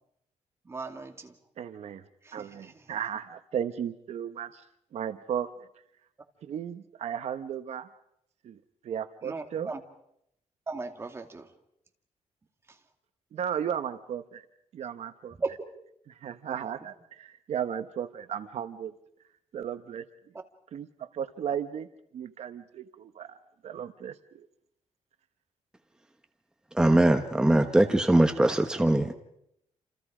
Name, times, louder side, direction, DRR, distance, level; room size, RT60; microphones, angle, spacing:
voice 1, 0.6-1.4 2.2-2.9 9.2-9.8 10.7-11.5 12.7-12.8 15.3-15.6, right 4 dB, 20° right, 2.3 m, -37 dB
voice 2, 1.6-2.0 2.3-4.6 4.9-5.7 6.4-7.9 8.4-8.6 8.8-9.7 13.3-14.4 14.7-15.4 16.1-18.9 19.5-20.1 20.7-21.9 22.1-23.4 23.6-24.5, right 9 dB, 65° right, 1.1 m, -35 dB
voice 3, 26.7-29.1, right 1 dB, 5° right, 1.2 m, -21 dB
28.5 x 28.0 x 5.0 m
wide cardioid pair, 150°, 12 cm